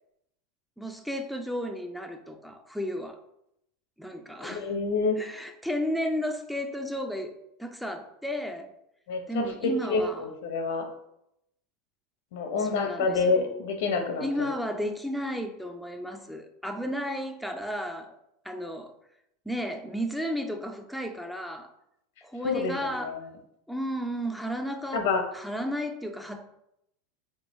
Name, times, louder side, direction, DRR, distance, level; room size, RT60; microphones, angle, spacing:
voice 1, 0.8-3.2 4.0-4.7 5.2-8.7 9.3-10.3 12.6-13.5 14.2-18.2 18.4-18.9 19.5-21.7 22.2-23.2 23.7-25.1 25.3-26.5, equal, ahead, 5 dB, 0.4 m, -33 dB
voice 2, 4.4-5.2 9.1-9.2 9.6-10.8 12.3-14.2 22.4-23.1 24.9-25.2, left 4 dB, 75° left, 4 dB, 0.7 m, -27 dB
3.6 x 2.3 x 4.0 m, 0.81 s
supercardioid pair, 120°, 0 cm